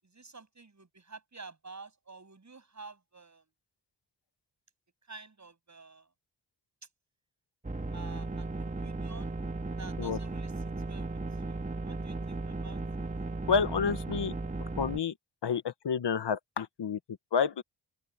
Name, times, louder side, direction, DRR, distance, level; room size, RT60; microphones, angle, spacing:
voice 1, 0.0-3.4 5.1-6.1 7.9-9.3 9.8-10.5 10.9-11.2 11.5-13.1, right 4 dB, 40° right, 7.3 m, -50 dB
sound 1, 7.6-15.0, right 3 dB, 20° right, 1.8 m, -36 dB
voice 2, 13.5-14.3 14.8-15.1 15.4-17.6, left 6 dB, 70° left, 1.5 m, -29 dB
open air
cardioid pair, 75°, 43 cm